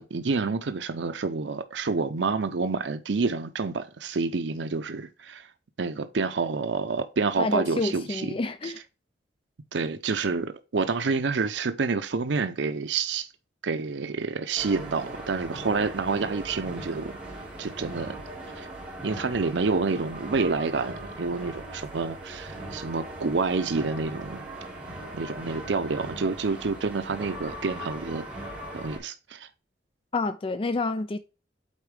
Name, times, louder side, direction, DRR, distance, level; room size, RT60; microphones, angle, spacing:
voice 1, 0.0-5.5 5.8-8.3 8.6-8.7 9.7-13.3 13.6-17.2 17.6-18.2 18.6-18.7 19.0-24.4 25.1-28.2 28.7-29.5, right 4 dB, 85° right, 0.6 m, -28 dB
voice 2, 7.4-8.8 30.1-31.2, left 3 dB, 30° left, 0.4 m, -28 dB
sound 1, 14.6-29.0, right 1 dB, 5° right, 3.3 m, -39 dB
8.2 x 4.5 x 3.3 m
head